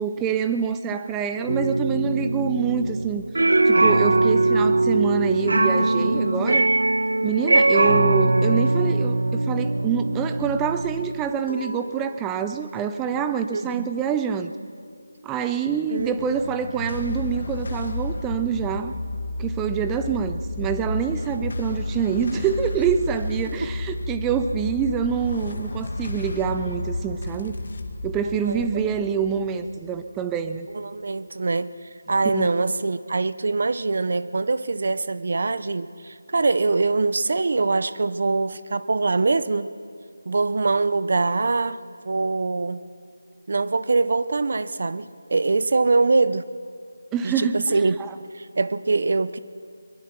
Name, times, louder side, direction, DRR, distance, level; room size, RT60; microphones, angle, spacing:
voice 1, 0.0-3.3 3.7-6.7 7.2-14.5 15.2-18.9 19.4-27.6 28.0-30.7 32.3-32.5 47.1-48.1, right 7 dB, 5° right, 9 dB, 0.4 m, -26 dB
sound 1, 1.5-11.2, right 2 dB, 70° right, 1.0 m, -21 dB
sound 2, 8.5-18.3 18.6-22.8, left 3 dB, 65° left, 6.6 m, -47 dB
voice 2, 13.5-13.9 15.9-16.2 23.6-23.7 28.4-28.8 30.7-39.7 40.3-42.9 43.5-46.5 47.2-48.0 48.3-49.4, right 3 dB, 40° right, 15 dB, 0.7 m, -23 dB
sound 3, 16.0-30.6, left 2 dB, 40° left, 1.8 m, -32 dB
22.5 x 22.5 x 6.0 m, 2.2 s
figure-of-eight pair, 180°, 0 cm